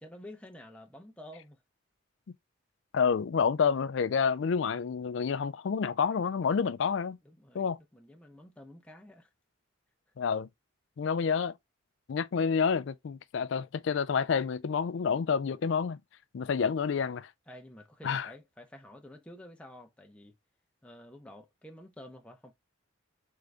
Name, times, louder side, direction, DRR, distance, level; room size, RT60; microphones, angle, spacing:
voice 1, 0.0-1.6 7.2-7.7 7.9-9.3 17.5-20.3 20.8-22.5, left 1 dB, 5° left, 0.7 m, -50 dB
voice 2, 2.9-7.2 7.5-7.8 10.2-10.5 11.0-11.5 12.1-16.0 16.3-17.3 18.0-18.3, left 6 dB, 60° left, 0.4 m, -28 dB
3.9 x 3.7 x 3.3 m
head